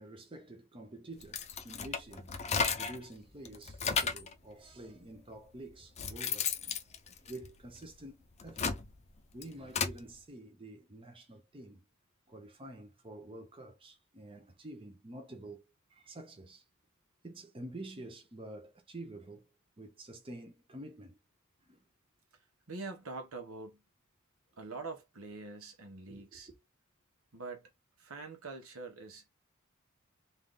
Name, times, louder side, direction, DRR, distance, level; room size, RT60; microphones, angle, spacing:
voice 1, 0.0-2.3 2.8-7.0 7.3-8.2 8.4-8.8 9.3-11.8 12.3-15.6 15.9-16.6 17.2-19.4 19.8-21.2 21.6-21.8 26.1-26.6, right 1 dB, 25° right, 0.7 m, -48 dB
sound 1, 1.2-3.1 3.5-4.3 5.2-5.3 5.7-7.9 8.3-10.0, left 5 dB, 30° left, 0.6 m, -34 dB
voice 2, 22.7-23.8 24.6-26.5 27.3-27.7 28.0-29.3, right 3 dB, 75° right, 1.2 m, -44 dB
3.4 x 2.6 x 3.8 m
head